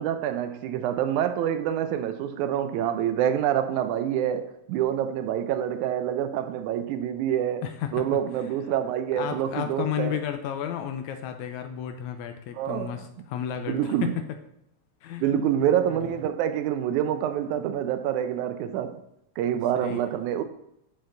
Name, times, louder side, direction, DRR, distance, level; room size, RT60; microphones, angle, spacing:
voice 1, 0.0-10.2 12.5-13.0 13.7-14.2 15.2-19.0 19.4-20.4, right 10 dB, 80° right, 1.9 m, -27 dB
voice 2, 7.6-8.0 9.1-14.1 15.0-15.5 15.9-16.2 19.8-20.0, left 9 dB, 80° left, 1.8 m, -32 dB
6.5 x 5.7 x 3.8 m
omnidirectional pair, 3.6 m